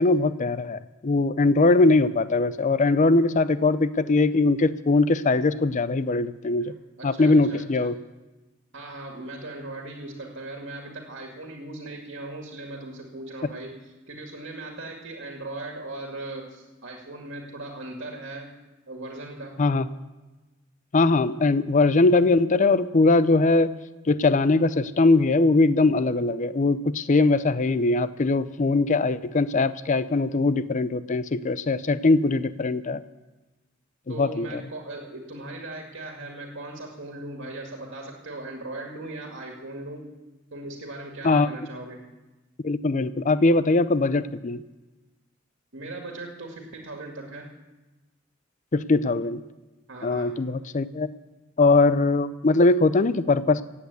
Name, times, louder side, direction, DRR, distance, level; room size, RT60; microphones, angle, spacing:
voice 1, 0.0-6.8 7.0-7.9 19.6-19.9 20.9-23.8 24.1-33.0 34.1-34.6 41.2-41.5 42.6-44.6 48.7-49.4 50.0-51.1 51.6-53.6, left 3 dB, 40° left, 15 dB, 0.5 m, -21 dB
voice 2, 6.6-7.9 8.7-13.8 14.1-18.5 18.9-19.6 34.1-40.1 40.5-42.0 45.7-47.5 49.9-50.3, right 2 dB, 65° right, 1 dB, 2.1 m, -38 dB
16.0 x 8.6 x 8.2 m, 1.1 s
head